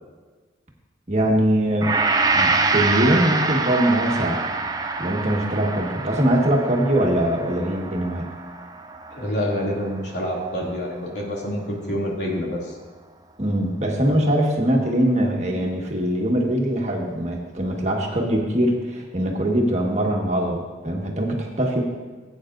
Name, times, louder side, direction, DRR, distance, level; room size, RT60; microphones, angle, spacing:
voice 1, 1.1-1.9 2.3-4.4 5.0-8.2 13.4-21.8, right 1 dB, 40° right, 0 dB, 1.5 m, -22 dB
Gong, 1.8-10.2 10.6-10.7, right 3 dB, 20° right, 0.5 m, -25 dB
voice 2, 9.1-12.7, equal, 75° left, -3 dB, 2.5 m, -27 dB
17.5 x 8.8 x 2.6 m, 1.4 s
head